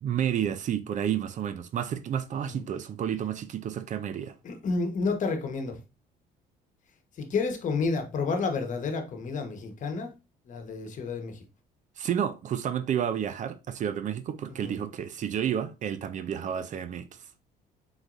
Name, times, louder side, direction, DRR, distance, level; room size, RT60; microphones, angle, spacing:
voice 1, 0.0-4.3 12.0-17.3, right 9 dB, 50° right, 0.5 m, -30 dB
voice 2, 4.4-5.8 7.1-10.1 10.5-11.4 14.5-14.8, left 4 dB, 50° left, 1.2 m, -30 dB
4.5 x 4.0 x 2.5 m
cardioid pair, 110°, 17 cm